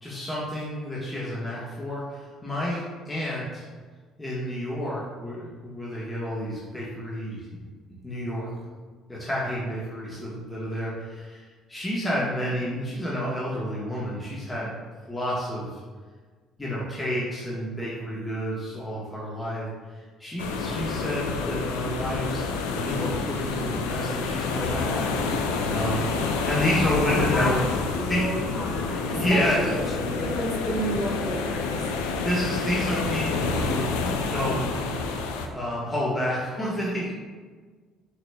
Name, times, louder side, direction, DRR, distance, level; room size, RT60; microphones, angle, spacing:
voice 1, 0.0-3.6 4.2-7.4 8.0-8.5 9.1-14.7 15.1-15.8 16.6-19.7 19.9-22.5 22.7-25.1 25.7-26.1 26.4-27.6 28.1-28.3 29.0-29.6 32.0-34.7 35.5-37.1, equal, 20° left, -7 dB, 1.1 m, -30 dB
sound 1, 20.4-35.5, left 4 dB, 80° left, 0.3 m, -28 dB
voice 2, 27.0-27.5 27.9-31.8, equal, 40° left, -4 dB, 1.4 m, -31 dB
5.9 x 3.0 x 2.2 m, 1.5 s
hypercardioid pair, 55°, 0 cm